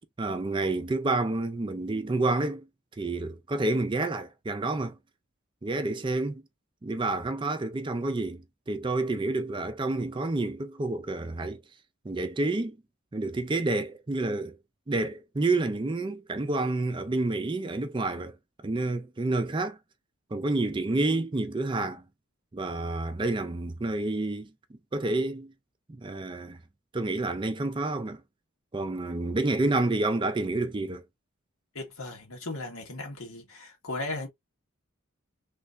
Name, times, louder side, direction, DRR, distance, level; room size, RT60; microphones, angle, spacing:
voice 1, 0.2-2.7 3.0-5.0 5.6-6.4 6.8-11.6 12.0-12.8 13.1-14.6 14.9-18.4 18.6-19.8 20.3-22.0 22.5-24.5 24.9-25.5 25.9-26.6 26.9-28.2 28.7-31.0, right 2 dB, 20° right, 0.4 m, -29 dB
voice 2, 31.8-34.3, left 2 dB, 85° left, 1.6 m, -36 dB
3.3 x 3.2 x 2.5 m
head